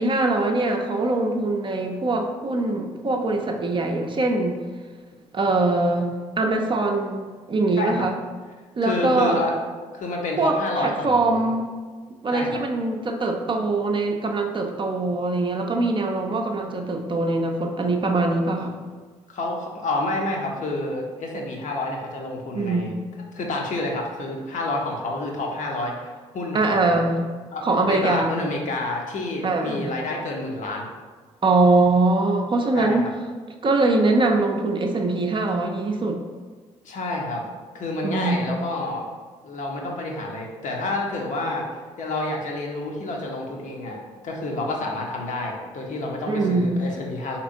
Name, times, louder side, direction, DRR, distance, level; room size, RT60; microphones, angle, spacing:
voice 1, 0.0-4.6 5.3-8.1 8.8-9.5 10.4-11.7 12.2-18.8 22.5-23.0 26.5-27.3 27.6-28.4 29.4-29.9 31.4-33.1 33.6-36.2 38.0-38.5 46.3-46.8, right 2 dB, 30° right, 2 dB, 0.4 m, -22 dB
voice 2, 7.7-8.1 8.8-9.5 9.9-11.5 12.3-12.6 19.3-23.0 23.4-25.9 26.3-27.1 27.5-30.9 32.7-33.1 36.8-37.4 37.7-39.1 39.4-41.7 42.0-47.4, left 2 dB, 55° left, 0 dB, 0.7 m, -29 dB
3.4 x 2.9 x 2.5 m, 1.5 s
hypercardioid pair, 45°, 16 cm